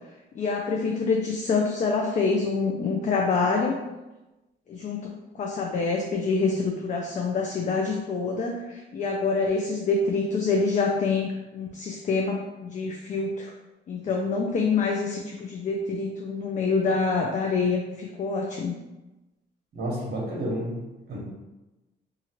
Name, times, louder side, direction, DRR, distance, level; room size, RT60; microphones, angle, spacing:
voice 1, 0.3-3.8 4.7-13.5 13.9-18.7, left 4 dB, 40° left, 1 dB, 0.4 m, -26 dB
voice 2, 19.7-21.2, right 1 dB, 50° right, -3 dB, 1.0 m, -31 dB
2.9 x 2.4 x 2.9 m, 1.1 s
cardioid pair, 90°, 20 cm